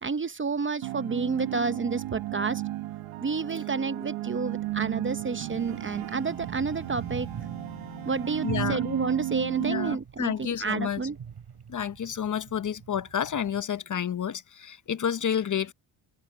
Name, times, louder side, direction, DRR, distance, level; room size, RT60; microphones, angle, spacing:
voice 1, 0.0-2.6 3.2-7.3 8.1-11.2, right 4 dB, 25° right, 0.8 m, -30 dB
sound 1, 0.8-10.0, right 15 dB, 85° right, 1.5 m, -34 dB
sound 2, 4.7-13.6, right 7 dB, 50° right, 5.6 m, -43 dB
Telephone, 5.5-8.6, left 9 dB, 65° left, 3.0 m, -49 dB
voice 2, 8.4-8.8 9.6-11.0 11.7-15.7, left 8 dB, 40° left, 0.8 m, -30 dB
cardioid pair, 80°, 48 cm